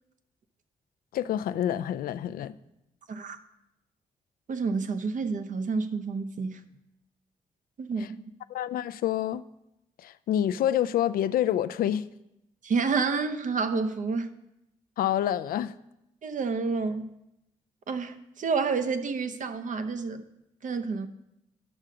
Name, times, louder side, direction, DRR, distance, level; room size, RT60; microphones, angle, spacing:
voice 1, 1.1-2.6 8.0-8.1 8.5-9.4 10.0-12.1 15.0-15.7, left 11 dB, 65° left, 0.4 m, -27 dB
voice 2, 4.5-6.6 7.8-8.2 12.6-14.3 16.2-17.1 17.9-20.2 20.6-21.1, right 4 dB, 50° right, 0.7 m, -29 dB
11.0 x 6.4 x 3.8 m
hypercardioid pair, 40°, 16 cm